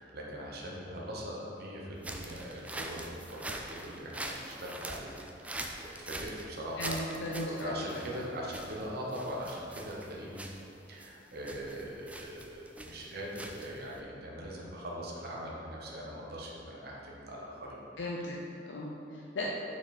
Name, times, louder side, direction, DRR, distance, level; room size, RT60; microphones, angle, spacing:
voice 1, 0.0-10.4 10.9-17.8, equal, 60° right, -3 dB, 1.0 m, -41 dB
sound 1, 2.0-14.0, right 1 dB, 10° right, 0.3 m, -43 dB
voice 2, 6.8-7.7 8.1-8.2 18.0-19.5, left 1 dB, 75° left, -4 dB, 0.6 m, -37 dB
5.8 x 4.7 x 4.2 m, 2.7 s
head